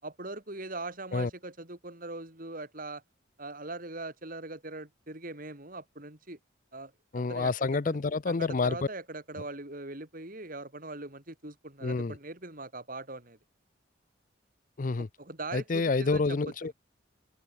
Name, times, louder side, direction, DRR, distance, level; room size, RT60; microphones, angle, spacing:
voice 1, 0.0-3.0 3.4-6.4 6.7-7.5 7.9-8.0 8.3-13.4 15.2-16.4, right 2 dB, 45° right, 4.3 m, -41 dB
voice 2, 7.1-8.8 11.8-12.2 14.8-15.1 15.5-16.7, left 3 dB, 45° left, 0.5 m, -28 dB
open air
head